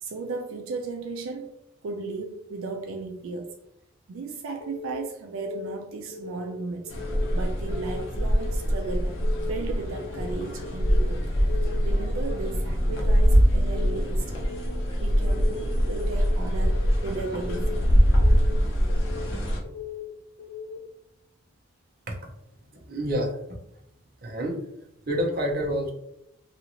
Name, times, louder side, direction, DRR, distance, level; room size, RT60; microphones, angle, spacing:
voice 1, 0.0-1.6 1.8-3.5 4.1-6.9 7.3-9.2 9.5-11.3 11.8-14.3 15.0-17.9, right 4 dB, 85° right, 3 dB, 0.4 m, -35 dB
Keyboard (musical) / Alarm, 4.6-5.0 5.3-5.7 6.1-6.5 6.8-7.2 7.6-8.0 8.4-8.7 9.1-9.5 9.9-10.2 10.6-11.0 11.4-11.7 12.1-12.5 12.9-13.2 13.6-14.0 14.4-14.7 15.1-15.5 15.9-16.3 16.6-17.0 17.4-17.8 18.1-18.5 18.9-19.3 19.6-20.0 20.4-20.8, left 6 dB, 20° left, 1.2 m, -39 dB
sound 1, 6.9-19.6, equal, 70° left, 0.7 m, -23 dB
voice 2, 22.7-23.6 24.2-24.6 25.1-25.9, equal, 45° right, 0 dB, 0.6 m, -28 dB
2.7 x 2.4 x 2.8 m, 0.78 s
head